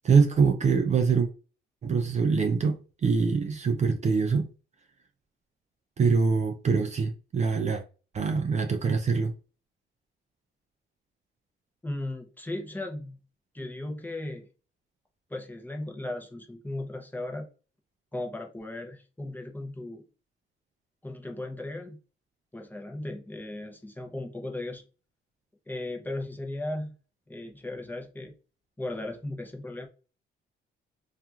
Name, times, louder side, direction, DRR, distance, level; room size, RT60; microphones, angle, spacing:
voice 1, 0.0-1.3 1.8-4.5 6.0-7.8 8.1-9.3, right 5 dB, 35° right, 0.4 m, -24 dB
voice 2, 11.8-13.2 13.5-14.5 15.3-17.5 18.1-20.0 21.0-22.0 22.5-24.8 25.7-26.9 27.3-28.3 28.8-29.9, left 1 dB, 10° left, 0.6 m, -36 dB
2.9 x 2.4 x 2.3 m
cardioid pair, 90°, 20 cm